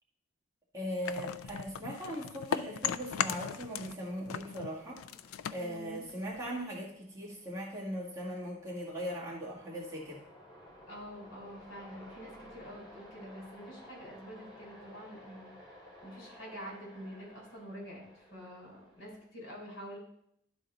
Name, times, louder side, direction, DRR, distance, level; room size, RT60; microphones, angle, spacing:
voice 1, 0.7-5.0 5.5-10.2, equal, 15° right, -6 dB, 1.8 m, -39 dB
sound 1, 1.0-4.0 4.3-6.6, left 8 dB, 90° left, 0.4 m, -37 dB
sound 2, 3.4-19.2, equal, 25° left, 3.4 m, -56 dB
voice 2, 5.6-6.1 10.9-15.8 16.0-20.0, equal, 65° left, -2 dB, 3.7 m, -47 dB
12.0 x 4.1 x 3.9 m, 0.72 s
head